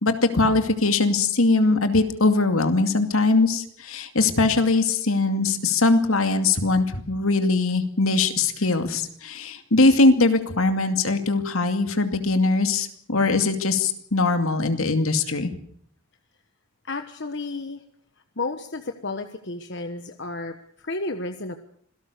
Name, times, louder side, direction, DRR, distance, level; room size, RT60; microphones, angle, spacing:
voice 1, 0.0-15.5, left 3 dB, 70° left, 7 dB, 2.4 m, -21 dB
voice 2, 16.8-17.8 18.4-21.6, left 3 dB, 55° left, 7 dB, 1.3 m, -32 dB
26.5 x 18.0 x 6.8 m, 0.62 s
head